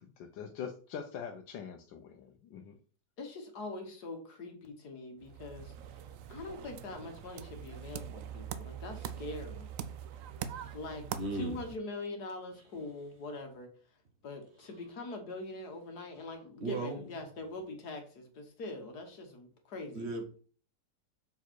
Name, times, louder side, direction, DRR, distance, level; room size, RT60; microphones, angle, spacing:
voice 1, 0.0-2.8, left 7 dB, 90° left, 3 dB, 1.4 m, -43 dB
voice 2, 3.2-5.7 6.3-9.7 10.7-11.1 11.3-13.7 14.2-20.1, left 2 dB, 60° left, 4 dB, 1.8 m, -43 dB
sound 1, 5.2-11.8, right 9 dB, 75° right, 0.7 m, -43 dB
voice 3, 11.1-11.5 16.6-17.0 19.9-20.4, right 2 dB, 40° right, 4 dB, 1.4 m, -36 dB
6.8 x 4.7 x 4.5 m, 0.40 s
omnidirectional pair, 1.9 m